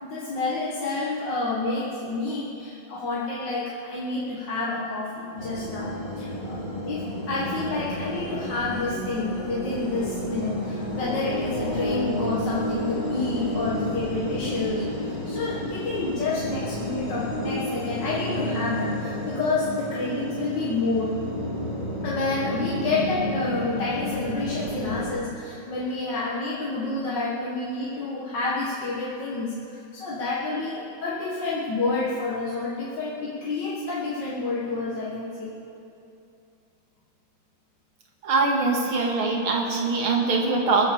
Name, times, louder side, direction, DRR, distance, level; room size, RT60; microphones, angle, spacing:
voice 1, 0.0-21.2 22.0-35.5, left 3 dB, 55° left, -6 dB, 2.3 m, -29 dB
sound 1, 5.4-25.1, left 1 dB, 20° left, 2.8 m, -31 dB
voice 2, 38.2-40.8, right 3 dB, 75° right, 0 dB, 2.8 m, -23 dB
22.5 x 8.3 x 7.0 m, 2.6 s
omnidirectional pair, 2.3 m